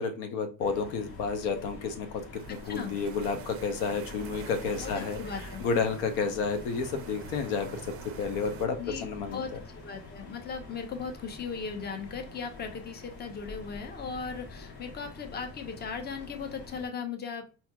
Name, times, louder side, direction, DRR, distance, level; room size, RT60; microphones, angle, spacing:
voice 1, 0.0-5.2 5.6-7.8 8.2-8.8 9.0-9.4, left 5 dB, 90° left, 6 dB, 0.8 m, -31 dB
sound 1, 0.6-16.9, left 3 dB, 75° left, 1.3 m, -46 dB
sound 2, 2.3-8.7, right 8 dB, 40° right, 0.4 m, -46 dB
voice 2, 2.5-2.9 4.8-5.6 8.8-9.1 9.3-17.5, left 5 dB, 25° left, 5 dB, 0.7 m, -38 dB
4.2 x 2.8 x 2.3 m, 0.34 s
cardioid pair, 105°, 38 cm